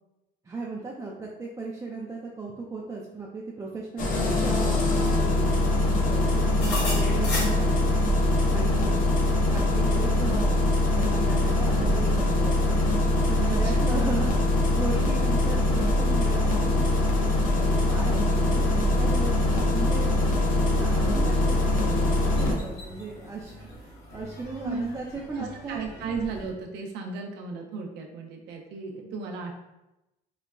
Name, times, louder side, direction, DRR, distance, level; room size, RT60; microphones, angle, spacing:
voice 1, 0.4-9.1 9.5-17.0 17.5-26.0, right 3 dB, 20° right, -4 dB, 0.4 m, -37 dB
Engine starting, 4.0-22.5, left 2 dB, 50° left, 0.7 m, -23 dB
sound 1, 6.6-26.5, left 1 dB, 75° left, 0.8 m, -41 dB
voice 2, 13.4-14.0 14.9-15.0 24.6-24.9 25.3-29.5, right 4 dB, 85° right, 2 dB, 0.5 m, -35 dB
3.9 x 2.1 x 2.3 m, 0.96 s
cardioid pair, 110°, 17 cm